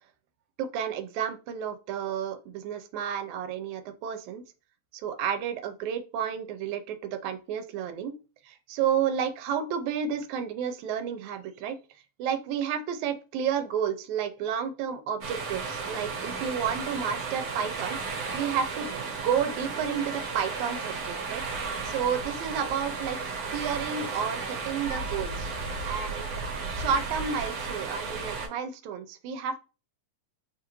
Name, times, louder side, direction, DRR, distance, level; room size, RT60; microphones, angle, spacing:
voice 1, 0.6-4.4 4.9-8.1 8.4-11.8 12.2-21.4 21.8-23.2 23.5-25.5 25.8-26.3 26.8-29.6, right 7 dB, 85° right, 9 dB, 1.9 m, -31 dB
sound 1, 15.2-28.5, right 4 dB, 60° right, 1.7 m, -34 dB
5.4 x 2.4 x 2.9 m, 0.32 s
omnidirectional pair, 3.3 m